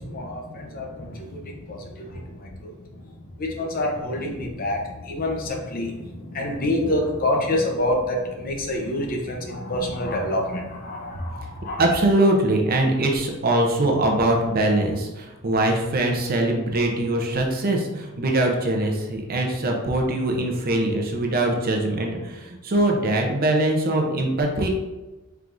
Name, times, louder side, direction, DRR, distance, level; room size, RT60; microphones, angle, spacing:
voice 1, 0.0-2.7 3.4-11.8, left 1 dB, 45° left, 0 dB, 0.7 m, -27 dB
voice 2, 11.8-24.7, right 1 dB, 45° right, 1 dB, 0.7 m, -22 dB
4.5 x 3.6 x 2.6 m, 1.1 s
head